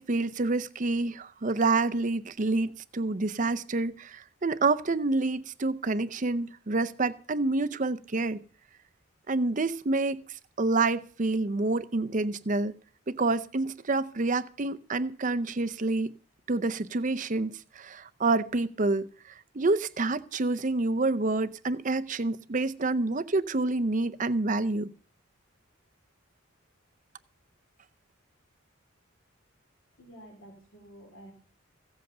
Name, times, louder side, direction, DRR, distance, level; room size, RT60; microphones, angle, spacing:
voice 1, 0.0-8.4 9.3-10.2 10.6-12.7 13.1-16.1 16.5-19.1 19.5-24.9, right 3 dB, 40° right, 0.6 m, -28 dB
voice 2, 30.0-31.3, right 1 dB, 75° left, 3.0 m, -50 dB
16.0 x 7.9 x 6.8 m
head